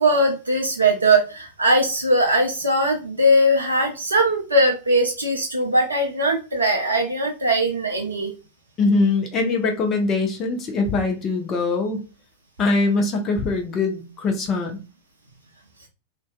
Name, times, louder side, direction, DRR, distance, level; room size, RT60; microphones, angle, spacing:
voice 1, 0.0-8.3, right 1 dB, 80° right, 1 dB, 0.4 m, -20 dB
voice 2, 8.8-12.0 12.6-14.8, left 3 dB, 30° left, 4 dB, 0.6 m, -22 dB
2.5 x 2.2 x 2.3 m, 0.32 s
figure-of-eight pair, 90°, 0 cm